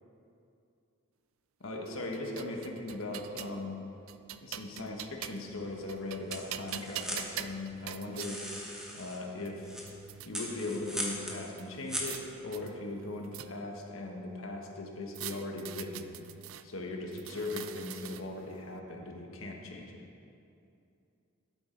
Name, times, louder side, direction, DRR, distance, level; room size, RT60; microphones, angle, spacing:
voice 1, 1.6-3.8 4.4-8.4 8.9-9.7 10.2-16.1 16.6-20.0, left 2 dB, 70° left, 1 dB, 1.3 m, -39 dB
sound 1, 1.9-3.6 4.1-5.5 5.9-8.3 9.1-9.2 9.5-10.3 11.6-12.2 12.5-13.8 15.1-16.6 17.1-18.4, right 10 dB, 75° right, 0.4 m, -44 dB
sound 2, 5.4-12.7, equal, 5° right, 1.3 m, -41 dB
12.5 x 8.7 x 3.9 m, 2.6 s
head